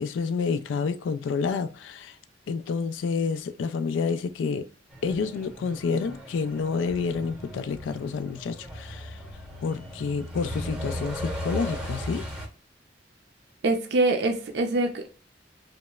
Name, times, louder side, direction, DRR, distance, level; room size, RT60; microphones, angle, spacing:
voice 1, 0.0-2.2 2.5-4.6 5.0-9.2 9.6-12.3, left 5 dB, 85° left, 0.3 m, -29 dB
Truck, 4.9-12.5, equal, 5° right, 0.7 m, -37 dB
voice 2, 13.6-15.1, right 2 dB, 65° right, 0.4 m, -24 dB
2.9 x 2.0 x 2.2 m
head